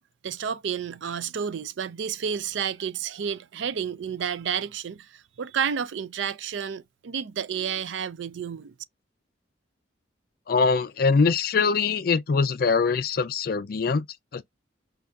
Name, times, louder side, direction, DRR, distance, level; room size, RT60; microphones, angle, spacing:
voice 1, 0.2-8.7, right 7 dB, 70° right, 0.4 m, -31 dB
voice 2, 10.5-14.1 14.3-14.4, left 4 dB, 50° left, 0.4 m, -23 dB
5.2 x 2.4 x 2.3 m
head